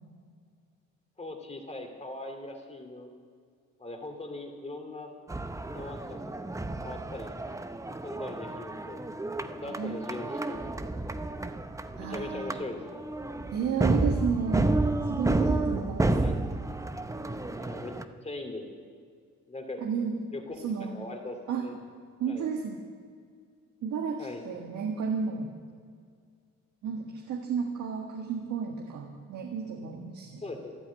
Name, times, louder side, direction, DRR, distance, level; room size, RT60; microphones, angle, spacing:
voice 1, 1.2-3.1 3.8-5.1 5.7-6.2 6.8-7.3 7.9-9.1 9.5-10.7 12.0-12.8 16.2-16.4 17.6-17.9 18.2-18.6 19.5-19.8 20.3-21.7 22.3-22.4 24.2-24.4 30.4-30.8, left 2 dB, 20° left, 4 dB, 2.8 m, -40 dB
sound 1, 5.3-18.1, right 2 dB, 10° right, 0.7 m, -31 dB
voice 2, 9.6-10.0 12.0-12.5 13.5-16.4 19.8-20.2 20.6-21.0 21.5-21.7 22.2-22.8 23.8-25.5 26.8-30.4, right 6 dB, 75° right, 1 dB, 1.6 m, -32 dB
13.5 x 11.5 x 8.7 m, 2.1 s
cardioid pair, 90°, 30 cm